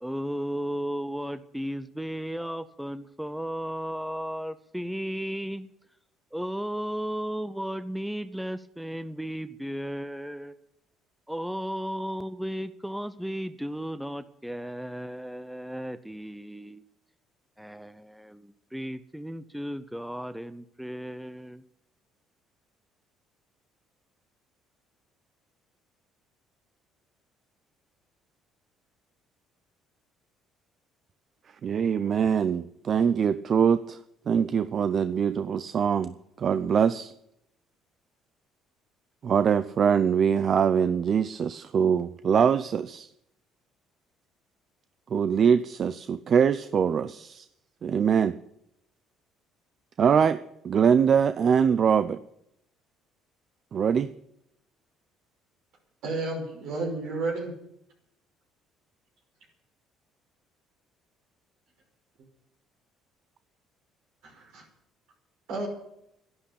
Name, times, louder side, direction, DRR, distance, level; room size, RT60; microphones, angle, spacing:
voice 1, 0.0-5.7 6.3-10.6 11.3-16.8 17.6-21.6, equal, 5° right, 12 dB, 0.7 m, -34 dB
voice 2, 31.6-34.0 34.3-36.1 36.4-37.1 39.2-43.1 45.1-47.5 47.8-48.4 50.0-50.4 50.6-52.2 53.7-54.1, right 7 dB, 45° right, 13 dB, 0.5 m, -23 dB
voice 3, 56.0-57.5 64.2-64.7 65.5-65.7, right 3 dB, 75° right, 1 dB, 5.6 m, -31 dB
11.0 x 10.5 x 8.4 m, 0.79 s
cardioid pair, 90°, 0 cm